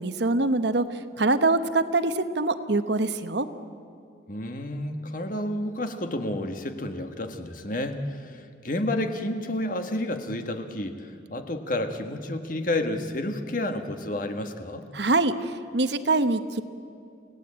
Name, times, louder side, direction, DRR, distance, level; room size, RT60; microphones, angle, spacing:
voice 1, 0.0-3.5 14.9-16.6, right 2 dB, 60° right, 10 dB, 1.1 m, -24 dB
voice 2, 4.3-14.9, left 1 dB, 45° left, 6 dB, 1.6 m, -30 dB
29.0 x 17.0 x 8.9 m, 2.5 s
head